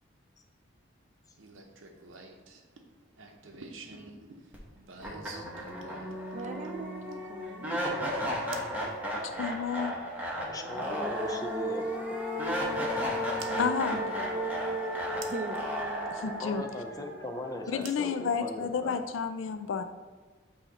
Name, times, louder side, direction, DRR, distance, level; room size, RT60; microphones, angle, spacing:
sound 1, 1.4-7.4 8.5-8.8 10.7-10.8 13.4-13.6 15.2-15.6 17.8-18.8, right 4 dB, 75° right, 0.7 m, -48 dB
sound 2, 4.5-4.6 5.0-18.1, equal, 10° right, 0.9 m, -34 dB
voice 1, 6.3-7.8 13.5-14.8 15.2-15.6, right 2 dB, 40° right, 6 dB, 0.5 m, -40 dB
voice 2, 9.2-9.9 13.6-14.0 16.1-16.7 17.7-19.8, left 6 dB, 75° left, 9 dB, 0.4 m, -31 dB
voice 3, 10.5-12.0 16.4-19.0, left 1 dB, 20° left, 4 dB, 0.5 m, -39 dB
8.1 x 2.8 x 4.0 m, 1.3 s
head